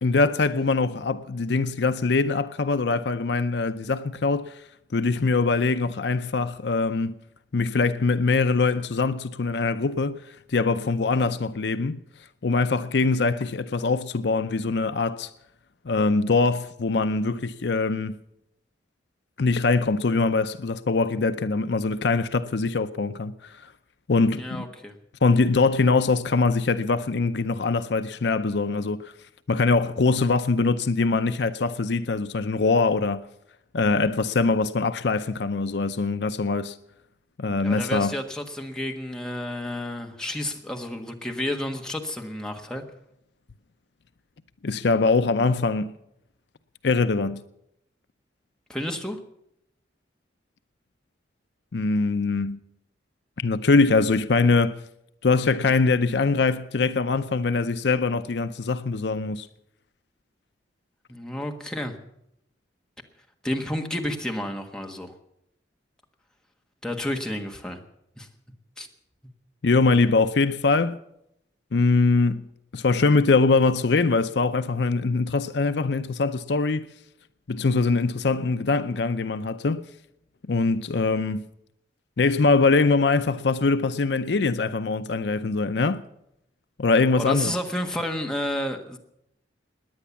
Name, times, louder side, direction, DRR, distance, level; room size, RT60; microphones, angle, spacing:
voice 1, 0.0-4.6 4.9-7.1 7.5-10.2 10.5-12.0 12.4-15.3 15.9-18.1 19.4-23.6 24.1-24.6 25.2-29.0 29.5-33.2 33.7-36.8 37.4-38.1 44.6-45.9 46.8-47.4 51.7-52.6 53.4-54.8 55.2-59.5 69.6-71.0 71.7-72.4 72.7-76.9 77.5-79.8 80.5-81.4 82.2-86.0 86.8-87.5, left 3 dB, 65° left, 0.6 m, -23 dB
voice 2, 24.3-24.9 37.6-42.8 48.7-49.2 61.1-61.9 63.4-65.1 66.8-67.8 68.2-68.3 68.8-68.9 87.2-89.0, left 1 dB, 5° left, 1.4 m, -31 dB
18.5 x 10.0 x 7.1 m
head